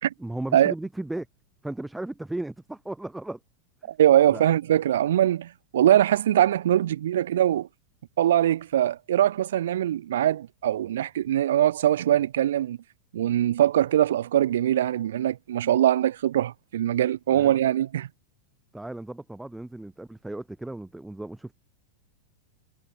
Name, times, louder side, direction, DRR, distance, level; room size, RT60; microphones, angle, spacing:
voice 1, 0.2-1.3 1.6-3.4 4.3-4.4 17.3-17.5 18.7-21.5, right 2 dB, 5° right, 5.8 m, -35 dB
voice 2, 3.9-7.7 8.2-12.8 13.1-18.1, right 11 dB, 60° right, 1.8 m, -22 dB
figure-of-eight pair, 90°, 0 cm